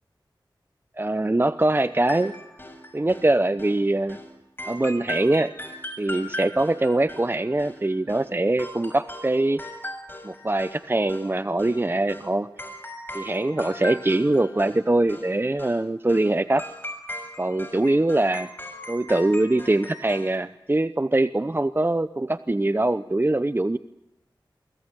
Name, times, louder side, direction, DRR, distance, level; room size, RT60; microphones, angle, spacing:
voice 1, 1.0-2.3 2.9-4.2 4.7-5.5 6.0-9.6 10.2-12.5 13.1-16.6 17.4-18.5 18.9-23.8, right 2 dB, 25° right, 13 dB, 0.8 m, -23 dB
sound 1, 1.7-3.3 3.6-3.8 4.1-4.3 4.6-8.3 8.6-10.8 11.1-11.8 12.1-12.3 12.6-14.8 15.1-15.3 15.6-15.8 16.1-16.3 16.6-20.4, left 1 dB, 25° left, 6.4 m, -39 dB
24.5 x 24.0 x 7.2 m, 0.92 s
cardioid pair, 40°, 9 cm